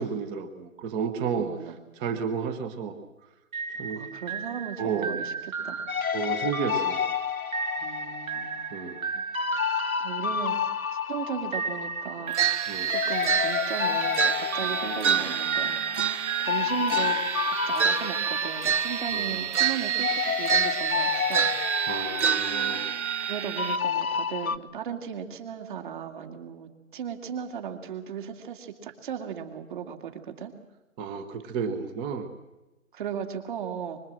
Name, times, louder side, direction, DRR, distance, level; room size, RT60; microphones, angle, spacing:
voice 1, 0.0-1.5 2.0-2.9 3.8-4.0 4.8-5.1 6.1-7.0 8.7-9.0 12.7-12.9 14.6-14.7 19.1-19.5 21.9-22.8 31.0-32.3, right 6 dB, 10° right, 9 dB, 1.1 m, -31 dB
voice 2, 1.4-1.8 3.9-5.3 5.6-5.8 7.8-8.7 9.1-9.2 10.0-10.6 11.1-12.4 13.1-15.8 16.4-21.5 23.2-30.5 32.9-34.0, right 8 dB, 35° right, 5 dB, 2.5 m, -36 dB
sound 1, 3.5-11.0 11.5-18.8, right 6 dB, 75° right, 1.6 m, -36 dB
sound 2, 5.9-12.6 12.9-19.7 20.0-24.6, left 7 dB, 80° left, 1.2 m, -30 dB
sound 3, 12.3-23.8, right 7 dB, 55° right, 1.1 m, -28 dB
24.5 x 22.5 x 7.6 m, 1.0 s
hypercardioid pair, 155°, 42 cm